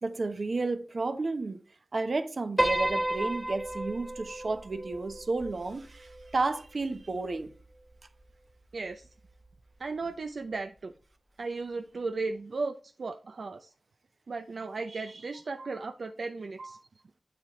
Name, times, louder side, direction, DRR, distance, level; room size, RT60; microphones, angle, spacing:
voice 1, 0.0-1.6 1.9-7.5, right 3 dB, 60° right, 1.0 m, -32 dB
Piano, 2.6-7.0, right 1 dB, 15° right, 1.6 m, -33 dB
voice 2, 8.7-9.1 9.8-10.9 11.4-13.7 14.3-16.9, right 3 dB, 75° right, 0.6 m, -36 dB
8.6 x 7.7 x 3.2 m
cardioid pair, 55°, 0 cm